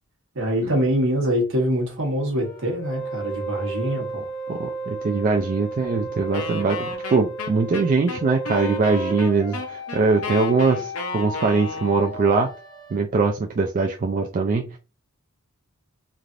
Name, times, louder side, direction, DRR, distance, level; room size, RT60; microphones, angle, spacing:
voice 1, 0.3-4.3, equal, 60° right, 1.2 m, -24 dB
sound 1, 2.4-13.0, right 2 dB, 45° left, 1.2 m, -33 dB
voice 2, 4.5-12.5 12.9-14.8, right 4 dB, 40° right, 0.3 m, -22 dB
Wind instrument woodwind instrument, 6.3-12.2, left 3 dB, 70° left, 0.6 m, -33 dB
3.2 x 2.4 x 2.5 m
head